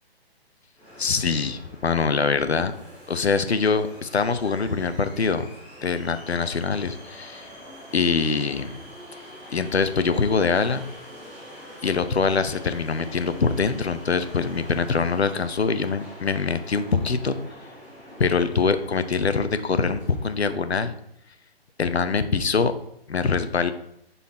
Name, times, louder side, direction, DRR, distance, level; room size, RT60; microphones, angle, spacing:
sound 1, 0.7-20.6, equal, 5° right, 2.2 m, -44 dB
voice 1, 1.0-2.7 3.1-5.5 5.8-7.5 7.9-8.8 9.5-10.8 11.8-17.4 18.2-20.9 21.8-22.7 23.1-23.7, left 5 dB, 85° left, 11 dB, 0.6 m, -24 dB
5.7 x 4.1 x 4.2 m, 0.77 s
figure-of-eight pair, 130°, 31 cm